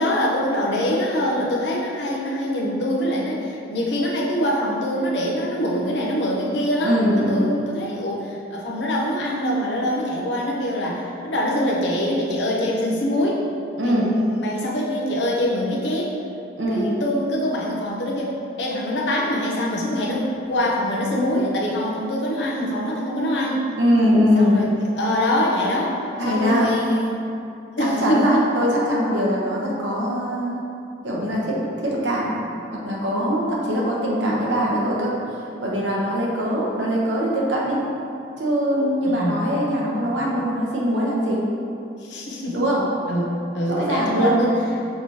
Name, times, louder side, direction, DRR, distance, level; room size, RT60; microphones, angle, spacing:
voice 1, 0.0-13.4 13.8-16.1 16.7-20.2 20.5-23.6 24.3-26.0 26.2-27.2 27.8-28.4 39.0-39.7 42.0-42.6 43.1-44.5, left 1 dB, 80° left, -3 dB, 0.8 m, -24 dB
voice 2, 6.8-7.5 13.8-14.2 16.6-16.9 23.8-24.6 26.2-26.7 27.8-30.6 31.0-32.3 32.7-35.1 35.6-37.8 38.4-41.5 42.5-42.9 43.7-44.5, equal, 90° right, -4 dB, 0.9 m, -22 dB
5.8 x 3.2 x 2.8 m, 2.5 s
head